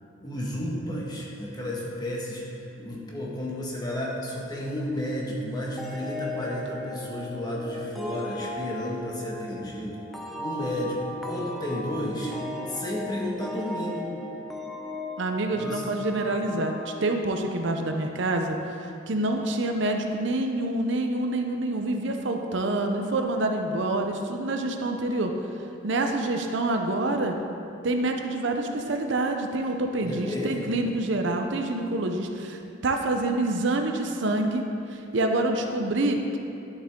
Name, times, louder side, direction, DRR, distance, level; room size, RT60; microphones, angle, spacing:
voice 1, 0.2-10.0 10.4-11.0 11.2-12.3 12.7-14.1 15.5-15.9 30.0-30.7, left 1 dB, 20° left, -4 dB, 1.5 m, -32 dB
sound 1, 5.8-18.2, left 1 dB, ahead, 0.7 m, -37 dB
voice 2, 15.2-25.3 25.8-27.4 27.8-34.6 34.9-36.4, right 2 dB, 65° right, 4 dB, 0.7 m, -27 dB
11.0 x 7.4 x 3.7 m, 2.6 s
head